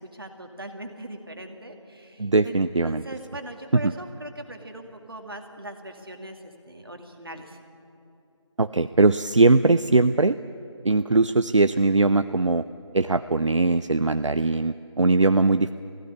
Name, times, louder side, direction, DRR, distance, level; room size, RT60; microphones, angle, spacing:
voice 1, 0.0-7.6, right 1 dB, 45° right, 4 dB, 2.2 m, -40 dB
voice 2, 2.2-3.0 8.6-10.4 10.8-12.6 12.9-15.7, right 3 dB, 75° right, 11 dB, 0.6 m, -20 dB
17.0 x 16.0 x 9.8 m, 2.8 s
figure-of-eight pair, 175°, 16 cm